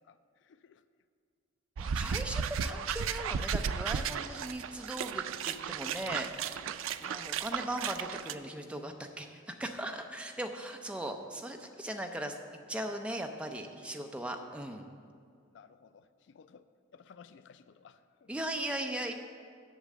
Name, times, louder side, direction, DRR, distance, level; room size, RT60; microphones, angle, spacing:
voice 1, 0.1-0.8 6.7-6.9 13.8-14.2 15.5-16.6 16.9-18.3, left 6 dB, 60° left, 13 dB, 0.3 m, -58 dB
voice 2, 1.8-6.6 7.0-12.4 12.7-14.9 18.3-19.1, right 1 dB, 5° right, 4 dB, 0.5 m, -38 dB
sound 1, 1.8-8.3, right 7 dB, 80° right, 0.4 m, -34 dB
8.2 x 6.3 x 7.6 m, 2.2 s
head